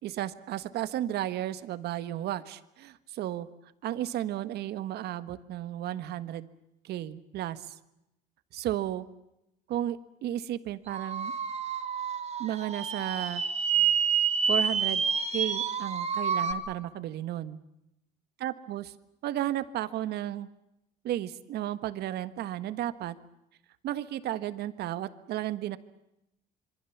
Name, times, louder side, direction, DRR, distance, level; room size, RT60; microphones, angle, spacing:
voice 1, 0.0-3.5 3.8-6.5 6.8-7.7 8.5-9.0 9.7-11.3 12.4-13.4 14.5-15.0 15.3-17.6 18.4-18.9 19.2-20.5 21.0-23.2 23.8-25.8, right 13 dB, 75° right, 13 dB, 1.6 m, -33 dB
sound 1, 10.9-16.5, right 6 dB, 40° right, 2.8 m, -28 dB
27.0 x 23.5 x 7.3 m, 0.86 s
cardioid pair, 110°, 17 cm